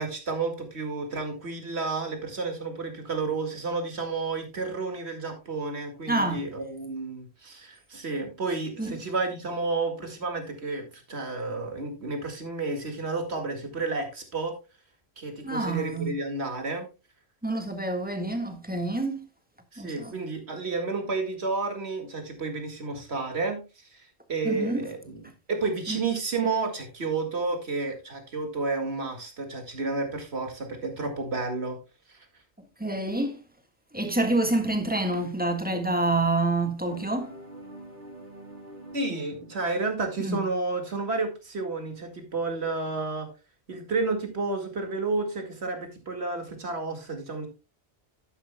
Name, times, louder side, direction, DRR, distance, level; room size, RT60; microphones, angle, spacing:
voice 1, 0.0-14.5 15.2-16.8 19.7-31.8 32.1-32.3 38.9-43.3 43.7-47.5, right 3 dB, 80° right, 2.4 m, -31 dB
voice 2, 6.1-6.4 8.8-8.9 15.4-16.1 17.4-19.2 19.8-20.1 24.4-24.9 25.9-26.0 32.8-33.4 33.9-37.3 40.2-40.4, right 2 dB, 10° right, 1.6 m, -27 dB
sound 1, 36.9-40.7, right 1 dB, 65° right, 4.0 m, -46 dB
11.5 x 10.0 x 2.2 m
omnidirectional pair, 1.1 m